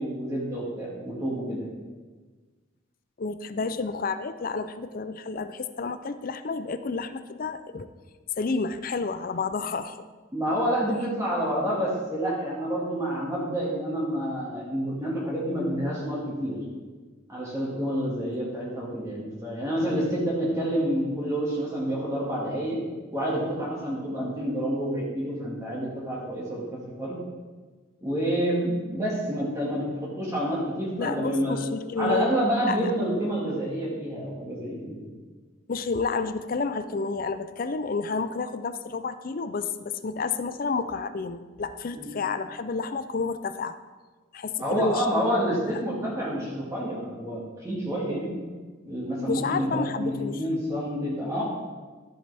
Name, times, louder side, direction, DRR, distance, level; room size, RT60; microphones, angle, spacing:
voice 1, 0.0-1.7 10.3-16.6 17.3-22.8 23.1-27.2 28.0-31.6 32.0-35.1 42.0-42.1 44.6-48.3 48.9-51.4, equal, 15° right, -6 dB, 2.0 m, -28 dB
voice 2, 3.2-7.9 8.4-10.0 31.0-32.4 32.7-32.9 35.7-43.7 44.3-45.2 45.7-45.8 49.3-50.4, left 4 dB, 45° left, 11 dB, 0.4 m, -30 dB
13.0 x 7.6 x 3.5 m, 1.4 s
head